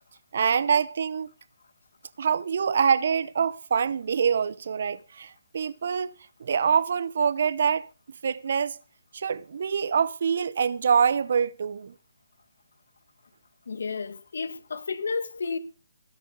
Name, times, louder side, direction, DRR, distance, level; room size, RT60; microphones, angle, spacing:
voice 1, 0.3-1.3 2.2-7.9 8.2-8.8 9.1-11.9, right 6 dB, 55° right, 0.9 m, -25 dB
voice 2, 13.7-15.6, left 4 dB, 70° left, 1.9 m, -31 dB
16.5 x 8.5 x 5.5 m
hypercardioid pair, 160°, 0 cm